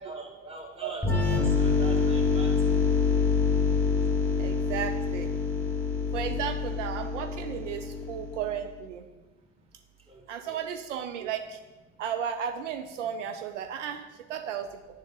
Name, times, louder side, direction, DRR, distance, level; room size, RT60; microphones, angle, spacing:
voice 1, 0.0-1.0 1.3-2.8 10.1-10.6, right 3 dB, 15° right, -1 dB, 1.7 m, -43 dB
sound 1, 1.0-8.6, left 4 dB, 5° left, 1.4 m, -26 dB
voice 2, 4.4-5.3 6.1-9.1 10.3-11.6 12.0-14.0 14.3-14.7, right 8 dB, 75° right, 7 dB, 0.5 m, -34 dB
9.5 x 3.8 x 3.6 m, 1.3 s
hypercardioid pair, 75°, 37 cm